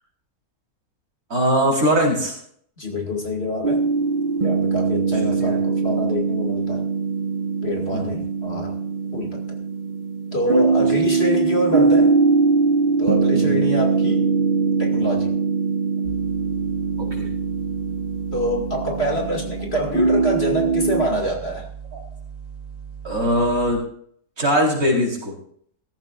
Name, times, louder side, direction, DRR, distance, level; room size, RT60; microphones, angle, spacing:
voice 1, 1.3-2.3 5.4-5.5 7.9-8.2 13.4-13.6 17.0-17.3 21.9-22.0 23.0-23.8 24.4-25.3, equal, 65° right, -2 dB, 4.5 m, -21 dB
voice 2, 2.8-3.8 4.4-6.9 7.6-8.8 9.1-9.6 10.3-12.1 13.0-14.3 14.8-15.4 18.3-21.7, left 1 dB, 40° left, 1 dB, 2.4 m, -26 dB
sound 1, 3.6-21.1, right 4 dB, 45° right, 0.6 m, -21 dB
sound 2, 16.0-23.8, right 7 dB, 25° right, 2.1 m, -38 dB
16.0 x 15.0 x 2.5 m, 0.62 s
omnidirectional pair, 1.7 m